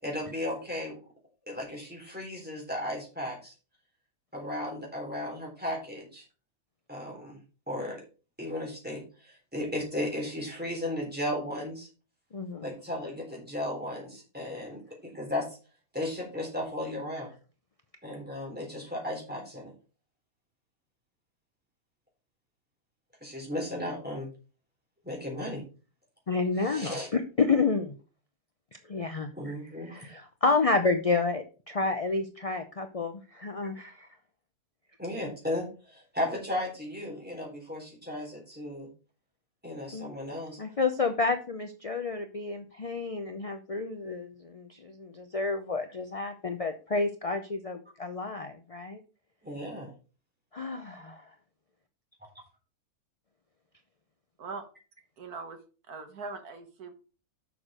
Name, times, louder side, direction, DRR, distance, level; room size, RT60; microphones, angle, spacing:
voice 1, 0.0-1.0 1.5-3.5 4.3-6.2 6.9-7.4 7.7-8.0 8.4-11.9 12.6-15.5 15.9-17.3 18.0-19.7 23.2-24.3 25.0-25.6 26.6-27.1 29.4-30.1 35.0-38.9 39.6-40.6 49.4-49.9, left 1 dB, 5° right, -2 dB, 3.7 m, -35 dB
voice 2, 12.3-12.7 26.3-28.0 28.9-29.5 29.9-34.1 39.9-40.1 40.6-49.0 50.5-51.0, left 4 dB, 50° left, 7 dB, 0.4 m, -30 dB
voice 3, 55.2-55.6 55.9-56.9, right 4 dB, 75° right, 7 dB, 1.7 m, -40 dB
7.0 x 6.3 x 5.0 m, 0.35 s
omnidirectional pair, 1.6 m